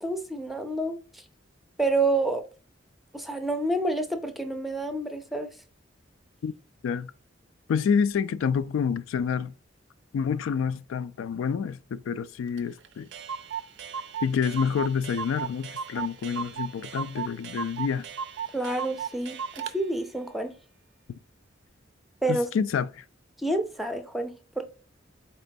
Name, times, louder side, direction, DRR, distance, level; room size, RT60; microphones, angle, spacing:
voice 1, 0.0-1.0 1.8-2.4 3.1-5.5 18.5-19.4 19.7-20.5 22.2-22.5 23.4-24.6, right 2 dB, ahead, 0.4 m, -28 dB
voice 2, 7.7-9.5 10.1-13.1 14.2-18.1 22.3-23.0, left 6 dB, 90° left, 0.3 m, -28 dB
Clock, 12.6-12.7 12.8-12.9 13.1-19.8, right 7 dB, 65° right, 0.4 m, -36 dB
4.3 x 3.0 x 2.6 m
head